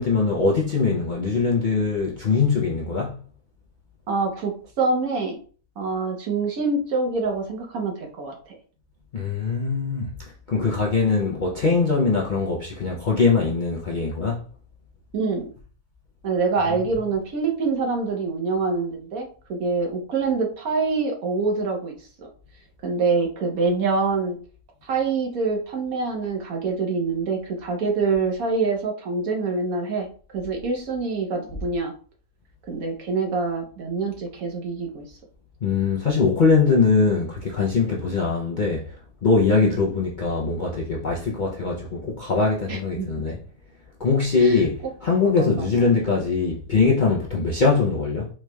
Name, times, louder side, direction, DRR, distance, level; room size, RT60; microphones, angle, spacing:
voice 1, 0.0-3.2 9.1-10.1 10.5-14.4 35.6-39.0 39.2-43.4 44.0-48.3, left 4 dB, 55° left, 0.5 m, -22 dB
voice 2, 4.1-5.4 5.8-8.5 10.5-10.7 15.1-15.5 16.2-22.3 22.8-24.4 24.8-31.9 32.7-35.1 39.6-39.8 42.7-43.2 44.4-44.7 45.2-45.9, right 4 dB, 70° right, 1.4 m, -25 dB
4.6 x 3.1 x 2.3 m
omnidirectional pair, 1.5 m